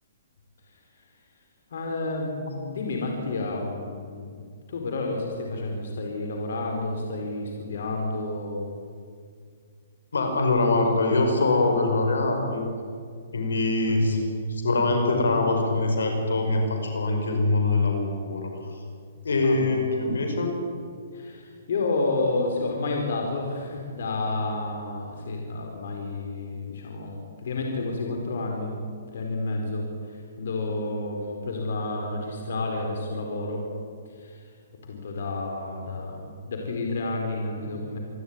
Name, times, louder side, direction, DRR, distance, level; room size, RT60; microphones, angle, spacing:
voice 1, 1.7-8.7 13.9-14.0 19.4-20.2 21.1-28.7 29.1-33.6 34.2-34.5 34.9-38.0, left 2 dB, 65° left, 1 dB, 4.4 m, -30 dB
voice 2, 10.1-12.7 13.3-18.5 19.2-20.5, left 2 dB, 85° left, 4 dB, 5.2 m, -23 dB
27.0 x 12.5 x 9.7 m, 2.2 s
hypercardioid pair, 140°, 0 cm